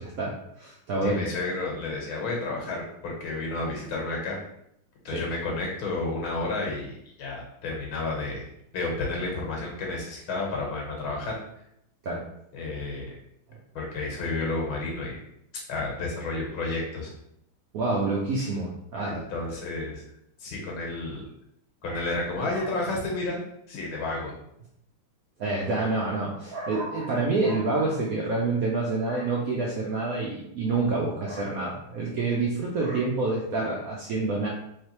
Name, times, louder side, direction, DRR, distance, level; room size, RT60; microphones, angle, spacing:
voice 1, 0.0-1.2 5.1-5.2 12.0-12.2 13.5-13.6 17.7-19.2 21.9-22.1 22.5-22.7 25.4-34.5, right 3 dB, 85° right, -3 dB, 0.7 m, -28 dB
voice 2, 1.0-4.4 5.1-8.5 8.7-11.4 12.5-13.2 13.8-15.2 15.7-17.1 19.0-20.0 20.4-21.3 21.8-23.4 23.7-24.3, left 2 dB, 85° left, -1 dB, 1.9 m, -31 dB
3.5 x 3.3 x 2.9 m, 0.75 s
omnidirectional pair, 2.2 m